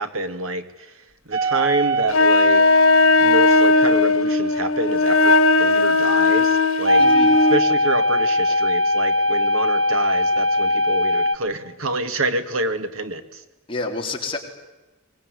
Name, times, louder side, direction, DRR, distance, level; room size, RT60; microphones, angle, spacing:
voice 1, 0.0-2.6 3.2-7.0 7.5-13.4, right 2 dB, 90° right, 8 dB, 2.2 m, -27 dB
sound 1, 1.3-2.1 6.8-11.4, left 1 dB, 70° right, 1.6 m, -19 dB
Wind instrument woodwind instrument, 2.1-7.6, left 3 dB, 85° left, 2.0 m, -17 dB
voice 2, 7.0-7.4 13.7-14.4, left 3 dB, 25° left, 1 dB, 4.0 m, -28 dB
24.0 x 20.5 x 9.8 m, 1.1 s
head